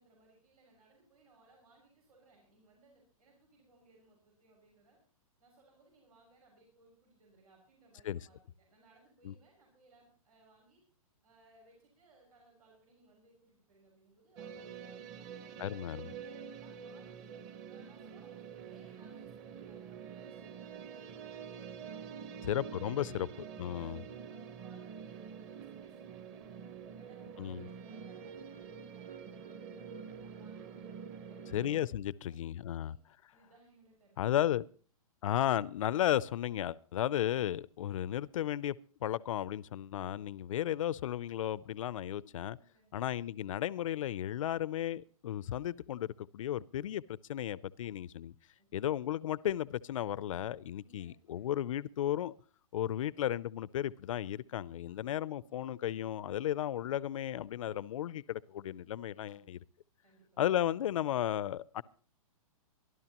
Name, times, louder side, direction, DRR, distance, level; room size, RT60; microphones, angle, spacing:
voice 1, 0.0-5.0 5.4-10.8 11.2-15.6 16.0-17.3 17.7-22.6 23.1-26.7 26.9-29.9 30.2-31.7 32.1-33.0 33.3-34.5 42.5-43.0 48.6-48.9 50.8-51.5 54.9-55.1 55.4-55.5 59.1-59.5 60.0-60.4, right 2 dB, 90° right, 6.4 m, -64 dB
sound 1, 14.4-31.9, right 7 dB, 30° right, 1.1 m, -47 dB
voice 2, 15.6-16.1 22.5-23.3 23.6-24.0 27.4-27.7 31.5-33.0 34.2-34.6 35.2-42.6 42.9-48.3 48.7-52.3 52.7-59.6 60.4-61.8, left 11 dB, 60° left, 0.5 m, -34 dB
23.5 x 12.5 x 3.0 m
hypercardioid pair, 160°, 19 cm